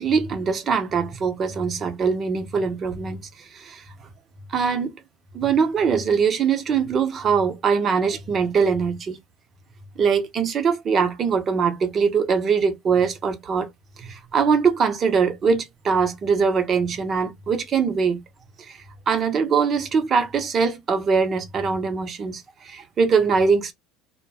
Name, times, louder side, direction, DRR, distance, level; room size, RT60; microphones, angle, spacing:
voice 1, 0.0-3.8 4.5-4.9 5.3-9.2 10.0-13.7 14.0-18.2 18.6-18.8 19.1-23.7, right 5 dB, 40° right, 0.8 m, -22 dB
2.2 x 2.1 x 3.3 m
supercardioid pair, 95°, 0 cm